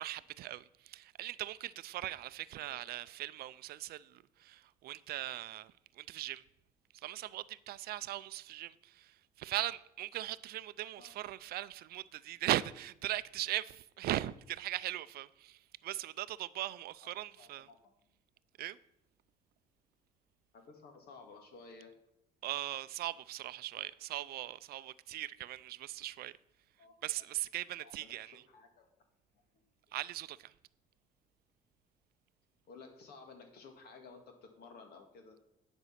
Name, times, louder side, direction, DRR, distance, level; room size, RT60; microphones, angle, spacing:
voice 1, 0.0-6.4 6.9-17.7 18.6-18.8 22.4-26.3 27.0-28.4 29.9-30.5, right 15 dB, 65° right, 0.4 m, -39 dB
voice 2, 2.7-3.0 11.0-11.1 17.0-17.1 17.4-17.9 20.5-21.9 26.8-26.9 27.8-28.9 32.7-35.4, left 4 dB, 65° left, 2.1 m, -55 dB
11.0 x 5.3 x 5.8 m
cardioid pair, 110°, 17 cm